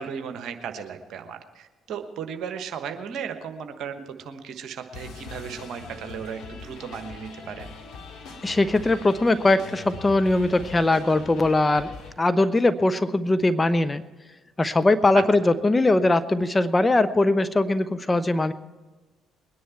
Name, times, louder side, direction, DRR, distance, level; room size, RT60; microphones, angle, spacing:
voice 1, 0.0-7.7 15.1-15.2, right 7 dB, 60° right, 7 dB, 1.3 m, -35 dB
sound 1, 4.9-12.1, left 4 dB, 60° left, 2.3 m, -41 dB
voice 2, 8.4-11.9 12.2-14.0 14.6-18.5, left 2 dB, 20° left, 11 dB, 0.8 m, -21 dB
21.0 x 10.0 x 4.5 m, 1.3 s
figure-of-eight pair, 45°, 0 cm